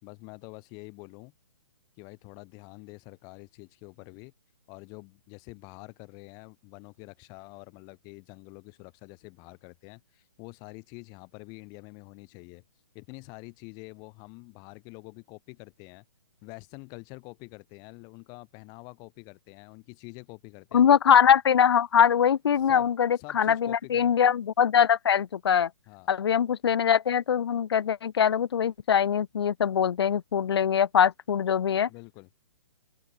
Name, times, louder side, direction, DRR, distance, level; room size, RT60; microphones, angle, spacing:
voice 1, 0.0-1.3 2.0-4.3 4.7-12.6 12.9-16.0 16.4-20.8 22.6-24.1 25.9-26.1 31.9-32.3, left 31 dB, 25° left, 1.7 m, -46 dB
voice 2, 20.7-25.7 26.1-31.9, left 8 dB, 55° left, 0.4 m, -22 dB
open air
figure-of-eight pair, 125°, 16 cm